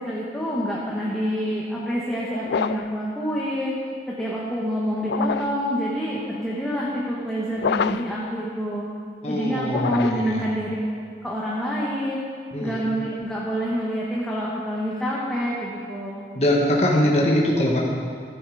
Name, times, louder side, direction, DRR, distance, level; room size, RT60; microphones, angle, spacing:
voice 1, 0.0-3.7 4.1-8.9 9.3-10.8 11.2-12.2 12.6-16.3, equal, 5° left, -7 dB, 1.4 m, -27 dB
sound 1, 2.4-3.0 5.0-5.6 7.6-8.2 9.7-10.4, left 6 dB, 70° left, 0.3 m, -27 dB
voice 2, 9.2-10.4 12.5-12.8 16.3-17.8, left 1 dB, 35° left, -2 dB, 1.5 m, -22 dB
15.0 x 10.5 x 4.9 m, 2.1 s
head